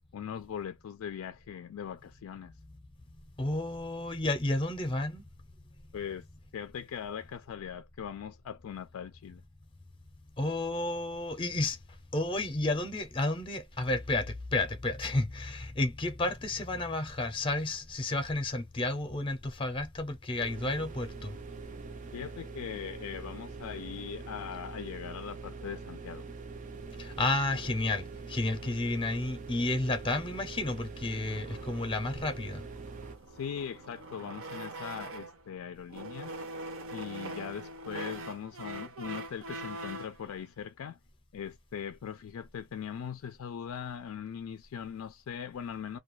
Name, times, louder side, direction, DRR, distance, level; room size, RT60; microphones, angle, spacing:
voice 1, 0.1-2.5 5.9-6.3 6.5-9.4 22.1-26.3 33.3-36.3 36.9-41.0 41.3-46.0, left 8 dB, 80° left, 0.3 m, -40 dB
voice 2, 3.4-5.2 10.4-11.8 12.1-21.4 27.0-32.6, left 2 dB, 25° left, 0.6 m, -31 dB
sound 1, 20.4-33.2, right 4 dB, 35° right, 0.4 m, -44 dB
sound 2, 31.3-35.5 35.9-40.2, right 1 dB, 65° right, 0.7 m, -43 dB
2.3 x 2.3 x 3.0 m
head